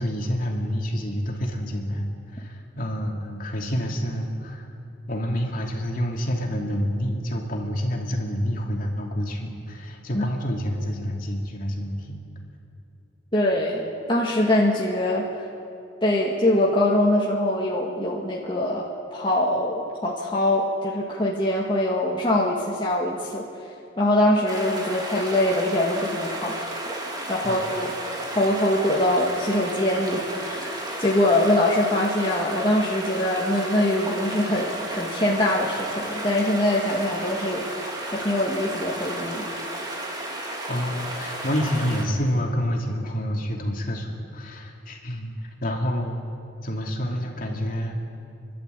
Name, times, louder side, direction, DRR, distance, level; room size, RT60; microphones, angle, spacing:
voice 1, 0.0-4.7 5.1-12.2 27.4-27.7 40.3-45.3 45.6-46.2 46.6-48.0, equal, 45° left, 0 dB, 2.9 m, -28 dB
voice 2, 13.3-13.8 14.1-15.2 16.0-23.4 24.0-26.6 27.3-27.9 28.3-37.7 38.1-39.5, left 1 dB, 25° left, -4 dB, 1.9 m, -23 dB
sound 1, 24.5-42.1, right 1 dB, 20° right, 2.5 m, -33 dB
29.5 x 12.0 x 8.4 m, 2.7 s
head